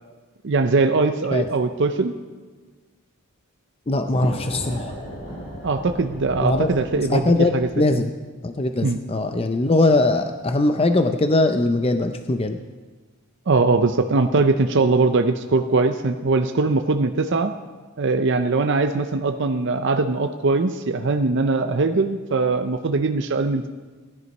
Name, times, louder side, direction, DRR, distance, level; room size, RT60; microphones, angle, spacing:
voice 1, 0.4-2.1 4.2-4.3 5.6-7.7 8.8-9.0 13.5-17.5 18.0-23.7, right 3 dB, 55° right, 7 dB, 0.6 m, -21 dB
voice 2, 3.9-5.0 6.4-6.7 7.1-8.1 8.4-12.6, left 2 dB, 25° left, 7 dB, 0.5 m, -21 dB
sound 1, 4.1-7.8, equal, 45° left, 3.3 m, -36 dB
16.5 x 11.0 x 5.4 m, 1.4 s
head